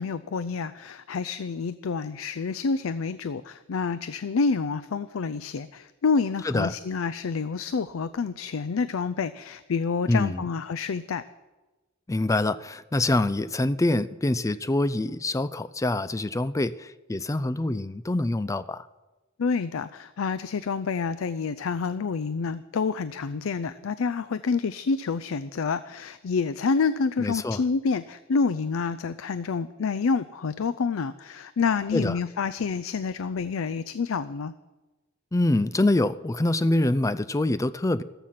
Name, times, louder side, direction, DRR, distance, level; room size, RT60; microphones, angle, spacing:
voice 1, 0.0-11.2 19.4-34.5, left 5 dB, 85° left, 14 dB, 0.5 m, -28 dB
voice 2, 6.4-6.8 10.1-10.4 12.1-18.9 27.2-27.6 31.9-32.2 35.3-38.0, left 2 dB, 15° left, 15 dB, 0.4 m, -25 dB
14.5 x 14.0 x 5.9 m, 1.1 s
head